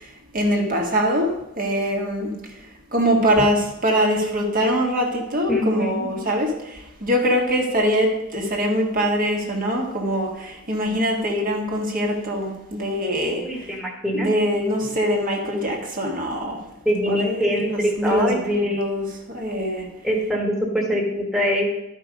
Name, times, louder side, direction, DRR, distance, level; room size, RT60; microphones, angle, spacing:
voice 1, 0.3-1.3 1.6-2.3 2.9-6.5 7.0-10.3 10.7-13.4 14.1-16.6 17.1-19.9, equal, 40° right, 0 dB, 1.7 m, -23 dB
voice 2, 5.5-6.3 13.2-14.3 16.8-18.4 18.6-18.8 20.0-21.7, equal, ahead, -2 dB, 1.6 m, -24 dB
12.0 x 5.4 x 5.2 m, 0.89 s
head